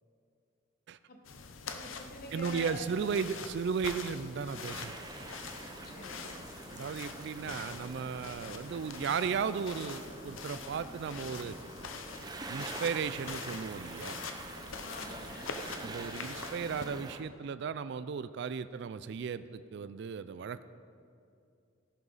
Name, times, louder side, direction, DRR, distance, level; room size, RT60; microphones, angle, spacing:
sound 1, 1.2-16.8, left 4 dB, 80° left, 0.8 m, -44 dB
voice 1, 1.7-2.9 5.8-6.4 14.8-15.5, left 2 dB, 50° left, 3 dB, 1.4 m, -46 dB
voice 2, 2.3-5.0 6.7-11.6 12.5-14.2 15.8-20.6, right 6 dB, 60° right, 14 dB, 0.3 m, -35 dB
sound 2, 4.5-17.2, right 2 dB, 20° right, 0.7 m, -46 dB
14.0 x 10.5 x 4.1 m, 2.5 s
head